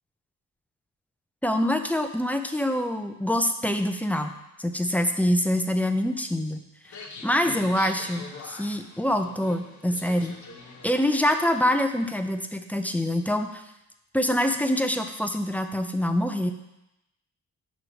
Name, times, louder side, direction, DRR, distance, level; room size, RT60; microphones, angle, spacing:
voice 1, 1.4-4.3 4.6-10.4 10.8-13.6 14.1-16.5, left 1 dB, 5° left, 6 dB, 0.5 m, -25 dB
sound 1, 6.8-12.2, left 4 dB, 65° left, 1.2 m, -44 dB
8.6 x 3.2 x 6.3 m, 0.88 s
cardioid pair, 110°, 31 cm